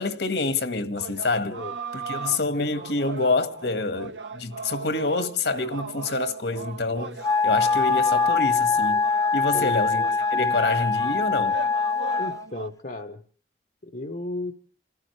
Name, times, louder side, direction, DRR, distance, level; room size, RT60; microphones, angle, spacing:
voice 1, 0.0-1.6 1.9-9.0 9.3-10.0 10.3-11.6, left 3 dB, 75° left, 1.8 m, -27 dB
sound 1, 0.9-12.7, right 4 dB, 90° right, 1.3 m, -37 dB
voice 2, 1.4-1.7 9.5-9.8 12.2-13.2 13.8-14.5, left 2 dB, 50° left, 1.0 m, -34 dB
Wind instrument woodwind instrument, 7.2-12.4, left 4 dB, 20° left, 0.9 m, -23 dB
28.5 x 15.5 x 3.2 m
head